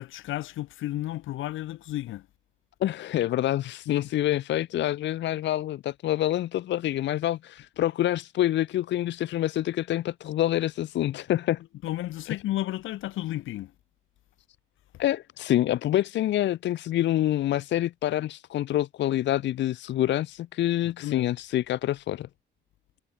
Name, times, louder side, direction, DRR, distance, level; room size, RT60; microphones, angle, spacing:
voice 1, 0.0-2.3 3.9-4.0 11.8-13.7 20.8-21.3, left 15 dB, 80° left, 1.1 m, -33 dB
voice 2, 2.8-11.6 15.0-22.3, left 13 dB, 65° left, 0.6 m, -26 dB
cardioid pair, 90°, 20 cm